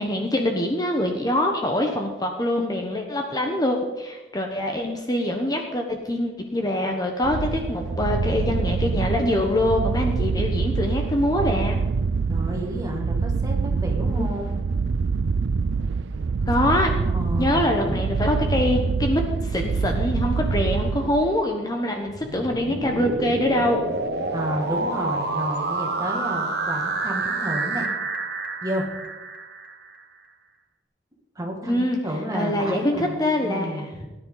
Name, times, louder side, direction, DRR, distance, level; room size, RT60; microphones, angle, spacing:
voice 1, 0.0-11.8 14.2-14.3 16.5-16.9 17.4-23.8 31.7-32.0 32.3-33.9, left 1 dB, 20° left, 3 dB, 1.1 m, -24 dB
sound 1, 7.2-21.5, right 4 dB, 85° right, 0.4 m, -25 dB
voice 2, 12.3-14.6 16.9-18.0 24.3-27.9 28.6-28.9 31.4-34.1, equal, 20° right, 0 dB, 2.2 m, -31 dB
sound 2, 22.0-30.0, right 3 dB, 60° right, 1.4 m, -28 dB
17.5 x 10.0 x 4.0 m, 1.1 s
head